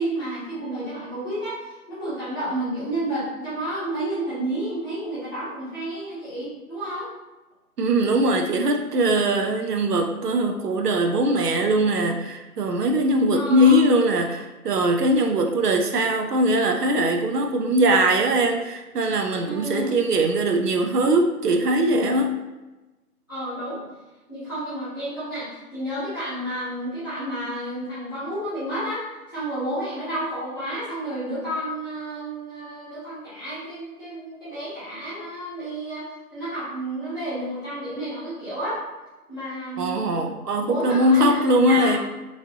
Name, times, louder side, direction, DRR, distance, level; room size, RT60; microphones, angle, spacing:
voice 1, 0.0-7.1 13.3-13.8 19.4-19.9 23.3-23.8 24.3-29.0 29.3-36.0 36.3-38.8 39.3-40.0 40.6-42.0, right 1 dB, 15° left, -16 dB, 1.0 m, -31 dB
voice 2, 7.8-22.4 39.8-42.0, right 1 dB, 85° right, 3 dB, 0.6 m, -21 dB
3.2 x 2.6 x 2.7 m, 1.1 s
figure-of-eight pair, 165°, 46 cm